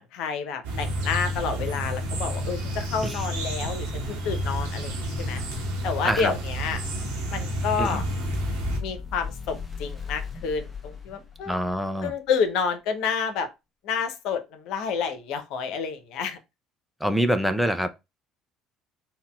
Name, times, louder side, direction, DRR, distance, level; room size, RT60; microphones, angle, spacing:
voice 1, 0.0-4.9 5.2-5.4 5.8-6.8 7.3-8.0 8.8-11.6 12.0-13.5 13.8-16.4, left 6 dB, 70° left, 0.6 m, -29 dB
sound 1, 0.6-8.8, equal, 80° right, 0.9 m, -30 dB
sound 2, 7.7-11.9, left 5 dB, 20° left, 1.1 m, -36 dB
voice 2, 11.5-12.1 17.0-17.9, equal, ahead, 0.4 m, -25 dB
4.0 x 2.1 x 2.2 m
hypercardioid pair, 65°, 0 cm